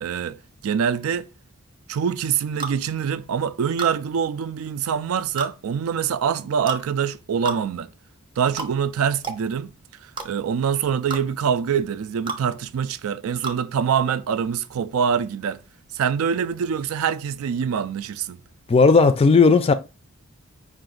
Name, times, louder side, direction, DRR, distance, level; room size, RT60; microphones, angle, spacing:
voice 1, 0.0-0.4 0.6-1.3 1.9-7.9 8.4-9.7 10.0-15.6 15.9-18.4, right 7 dB, 85° right, 0.4 m, -24 dB
sound 1, 2.6-2.8 3.8-4.0 5.4-5.5 6.7-6.8 7.4-7.6 8.6-8.7 9.2-9.4 10.2-10.3 11.1-11.2 12.3-12.4 13.4-13.6, right 3 dB, 25° right, 0.6 m, -30 dB
voice 2, 18.7-19.7, left 4 dB, 30° left, 0.3 m, -14 dB
5.0 x 2.5 x 3.8 m
head